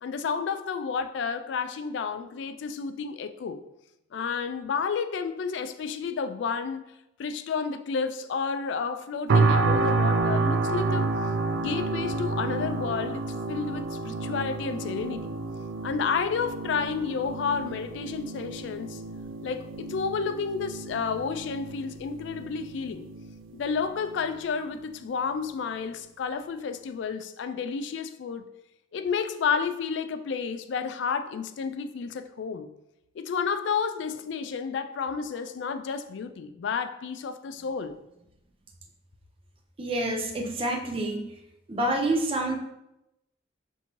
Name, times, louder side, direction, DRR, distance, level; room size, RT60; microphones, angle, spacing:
voice 1, 0.0-3.6 4.1-6.8 7.2-11.1 11.5-15.3 15.8-19.0 19.4-23.0 23.5-28.5 28.9-32.7 33.2-38.0, left 5 dB, 70° left, 0.3 m, -31 dB
sound 1, 9.3-24.3 24.8-25.0, right 3 dB, 85° right, 0.3 m, -29 dB
voice 2, 39.8-41.4 41.7-42.6, right 1 dB, 30° right, 0.5 m, -27 dB
5.7 x 2.6 x 2.9 m
head